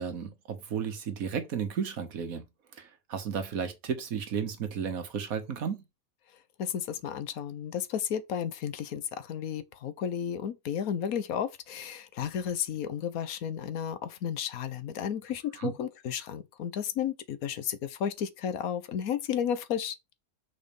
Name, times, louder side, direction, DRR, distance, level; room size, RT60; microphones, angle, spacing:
voice 1, 0.0-2.4 2.7-5.8 15.6-15.7, right 7 dB, 80° right, 1.6 m, -33 dB
voice 2, 6.6-20.0, left 8 dB, 85° left, 1.3 m, -33 dB
6.1 x 4.3 x 5.3 m
omnidirectional pair, 1.5 m